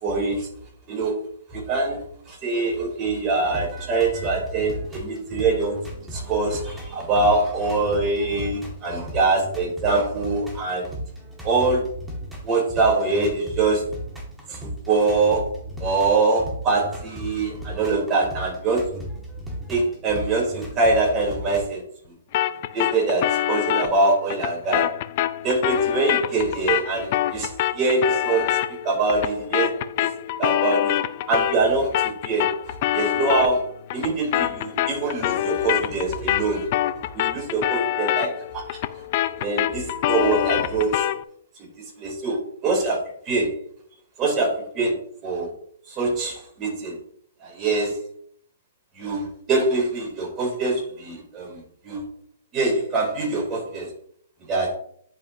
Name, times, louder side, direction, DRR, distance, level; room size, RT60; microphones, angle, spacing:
voice 1, 0.0-0.5 0.9-1.1 1.5-5.8 6.1-10.9 11.4-11.9 12.4-13.9 14.5-19.0 19.7-21.8 22.7-24.9 25.4-28.6 28.8-29.7 30.0-30.1 30.4-36.7 37.1-38.8 39.4-41.1 42.0-43.5 44.2-45.0 45.2-45.5 45.9-46.9 47.4-48.0 49.0-52.0 52.5-53.9 54.5-54.8, right 3 dB, 25° right, -2 dB, 3.4 m, -24 dB
sound 1, 3.2-21.7, equal, 5° right, 1.9 m, -36 dB
sound 2, 22.3-31.7 31.9-41.2, left 13 dB, 45° left, 0.5 m, -25 dB
10.5 x 5.7 x 2.8 m, 0.64 s
hypercardioid pair, 130°, 0 cm